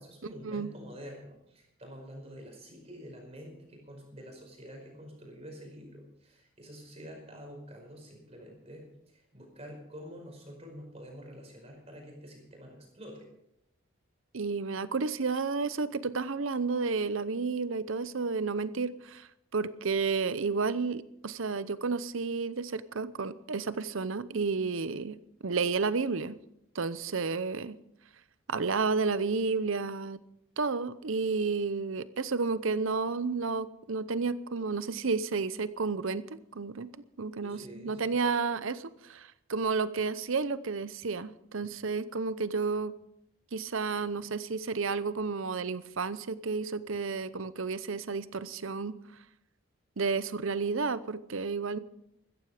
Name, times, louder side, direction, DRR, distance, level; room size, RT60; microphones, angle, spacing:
voice 1, 0.0-13.3 37.4-38.1, equal, 30° right, 1 dB, 5.1 m, -47 dB
voice 2, 14.3-25.2 25.4-26.4 26.7-27.8 28.5-30.2 30.6-36.9 37.2-42.9 43.5-49.0 50.0-51.8, right 4 dB, 70° right, 15 dB, 0.8 m, -31 dB
15.5 x 14.0 x 5.0 m, 0.78 s
head